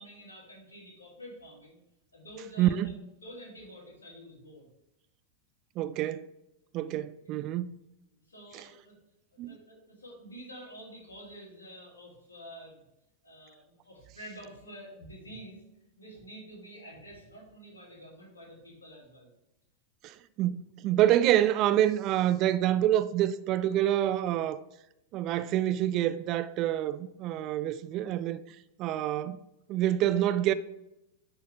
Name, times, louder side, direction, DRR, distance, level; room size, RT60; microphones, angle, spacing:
voice 1, 0.0-1.8 2.1-2.9 3.2-4.7 8.1-9.0 9.3-12.8 13.2-15.6 16.0-19.3, equal, 75° left, 2.7 m, -48 dB
voice 2, 2.6-3.0 5.8-6.3 6.7-7.8 8.5-8.6 9.4-9.6 20.0-24.6 25.1-28.4 28.8-29.4 29.7-30.5, right 12 dB, 35° right, 0.3 m, -27 dB
10.5 x 4.6 x 3.4 m
figure-of-eight pair, 90°, 0 cm